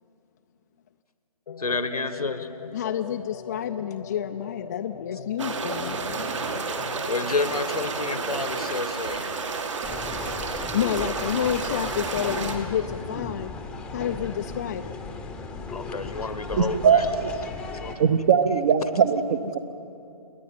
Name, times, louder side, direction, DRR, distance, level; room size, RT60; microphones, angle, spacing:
sound 1, 1.5-8.8, left 6 dB, 45° left, 0.9 m, -41 dB
voice 1, 1.6-2.5 7.1-9.4 10.9-11.1 15.7-17.1 17.6-18.1 18.8-18.9, left 3 dB, 80° left, 12 dB, 1.3 m, -30 dB
voice 2, 2.7-6.3 10.7-13.5 13.9-15.0, left 9 dB, 30° left, 5 dB, 0.5 m, -29 dB
sound 2, 5.4-12.6, right 4 dB, 55° right, 2.0 m, -31 dB
sound 3, 9.8-18.0, left 3 dB, 5° left, 0.9 m, -36 dB
voice 3, 16.5-17.3 18.0-19.2 19.5-19.6, right 7 dB, 30° right, 12 dB, 0.9 m, -20 dB
28.5 x 10.5 x 9.2 m, 2.7 s
figure-of-eight pair, 140°, 19 cm